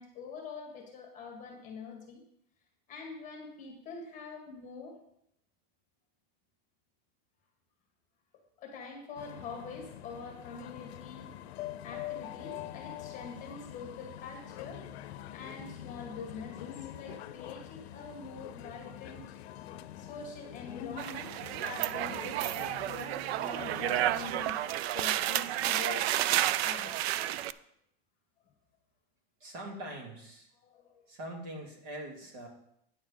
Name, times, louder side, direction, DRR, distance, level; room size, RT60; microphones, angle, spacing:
voice 1, 0.0-2.2 2.9-5.0 8.6-11.3 11.8-14.8 15.3-19.7 20.0-26.1 26.6-27.0 30.6-31.1, left 4 dB, 25° left, 2 dB, 1.7 m, -45 dB
sound 1, 9.2-23.0, left 13 dB, 85° left, 0.6 m, -45 dB
sound 2, 10.1-24.4, left 8 dB, 40° left, 1.0 m, -52 dB
sound 3, 21.0-27.5, right 13 dB, 75° right, 0.5 m, -31 dB
voice 2, 29.4-30.5 31.1-32.5, right 1 dB, 50° right, 0 dB, 2.6 m, -43 dB
9.5 x 4.5 x 7.2 m, 0.75 s
supercardioid pair, 170°, 31 cm